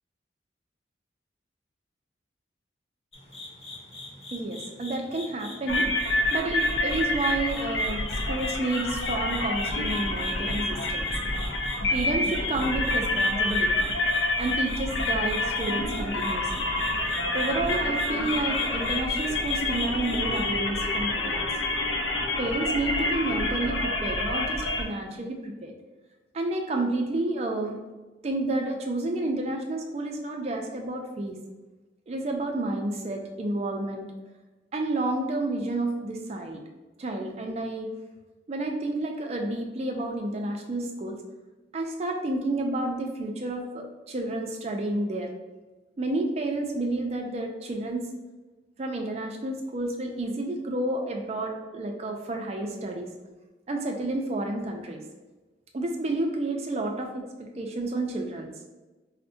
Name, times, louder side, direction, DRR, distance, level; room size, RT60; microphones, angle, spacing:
sound 1, 3.1-20.4, left 2 dB, 35° left, 0.8 m, -44 dB
voice 1, 4.3-5.9 6.3-11.1 11.9-13.7 14.4-16.7 17.3-21.5 22.4-25.7 26.3-27.8 28.2-31.4 32.1-34.1 34.7-36.6 37.0-37.9 38.5-41.2 41.7-45.3 46.0-48.1 48.8-53.1 53.7-55.0 55.7-58.5, right 2 dB, 35° right, 3 dB, 0.4 m, -30 dB
sound 2, 5.7-24.8, left 2 dB, 70° left, 0.5 m, -27 dB
4.4 x 2.1 x 2.6 m, 1.2 s
head